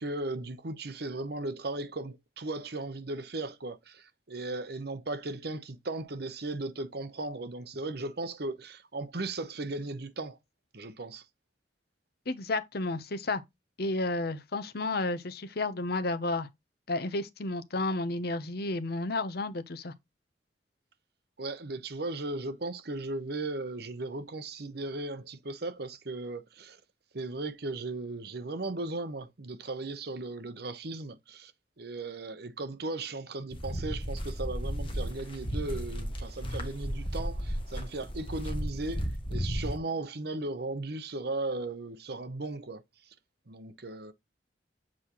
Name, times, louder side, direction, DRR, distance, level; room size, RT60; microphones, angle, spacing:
voice 1, 0.0-10.4 10.7-11.2 21.4-26.8 27.1-31.5 31.8-42.8 43.5-44.1, right 2 dB, 65° right, 0.9 m, -37 dB
voice 2, 12.3-13.4 13.8-16.5 16.9-19.9, left 2 dB, 60° left, 0.8 m, -32 dB
sound 1, 33.5-39.8, equal, 30° left, 1.4 m, -34 dB
7.4 x 4.2 x 3.0 m
head